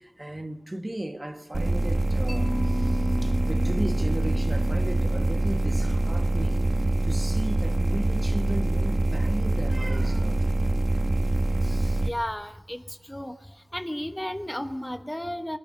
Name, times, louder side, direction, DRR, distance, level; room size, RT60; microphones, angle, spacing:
voice 1, 0.0-6.8 7.0-10.5, right 1 dB, 25° right, 1.3 m, -36 dB
sound 1, 1.5-12.1, right 2 dB, 50° right, 1.1 m, -24 dB
Mallet percussion, 2.3-6.3, left 2 dB, 55° left, 5.9 m, -37 dB
voice 2, 11.6-12.8 13.1-13.4 13.7-15.6, left 1 dB, 15° left, 1.0 m, -33 dB
26.5 x 10.5 x 9.7 m
wide cardioid pair, 75°, 0 cm